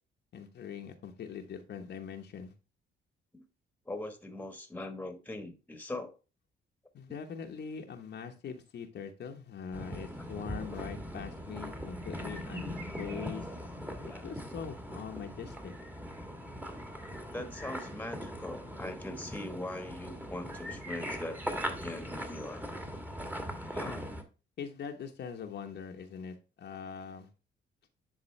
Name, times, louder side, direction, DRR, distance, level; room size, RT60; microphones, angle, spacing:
voice 1, 0.3-2.5 6.9-13.5 13.9-15.7 23.8-24.0 24.6-27.3, left 7 dB, 60° left, 1.0 m, -42 dB
voice 2, 3.8-6.1 14.1-14.3 17.3-22.6 23.7-24.0, left 2 dB, 10° left, 1.3 m, -41 dB
sound 1, 9.7-24.2, equal, 10° right, 1.4 m, -40 dB
10.0 x 3.7 x 3.2 m
cardioid pair, 90°, 20 cm